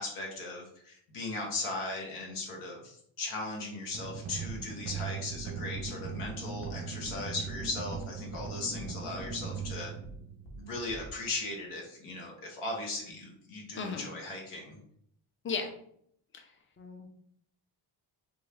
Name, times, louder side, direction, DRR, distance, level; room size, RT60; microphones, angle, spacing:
voice 1, 0.0-9.9 10.6-14.8, left 2 dB, 85° left, 0 dB, 0.9 m, -38 dB
sound 1, 3.9-10.8, right 6 dB, 30° right, 0.6 m, -40 dB
sound 2, 4.4-4.6 4.9-5.0 5.3-5.4 5.7-5.9 6.2-6.3 6.6-6.7 7.0-7.2 7.4-8.0 8.3-8.4 8.7-8.9 9.2-9.3 9.6-9.7 10.0-10.2 10.4-10.6 10.9-11.1, right 1 dB, 60° left, 1.0 m, -46 dB
voice 2, 13.8-14.1 15.4-15.7 16.3-16.4 16.8-17.1, left 4 dB, 25° left, 4 dB, 0.5 m, -35 dB
2.6 x 2.3 x 3.2 m, 0.68 s
supercardioid pair, 55°, 49 cm